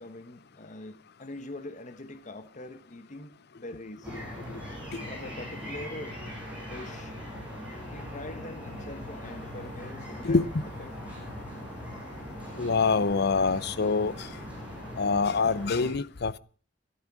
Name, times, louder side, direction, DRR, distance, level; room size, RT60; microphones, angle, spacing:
voice 1, 0.0-4.1 5.1-6.2 6.6-7.1 7.9-10.4 10.8-10.9, left 2 dB, 40° left, 1.2 m, -43 dB
sound 1, 4.0-15.9, equal, 5° right, 6.7 m, -40 dB
voice 2, 12.6-14.1 15.0-16.4, left 4 dB, 60° left, 0.6 m, -25 dB
13.5 x 12.5 x 6.0 m
head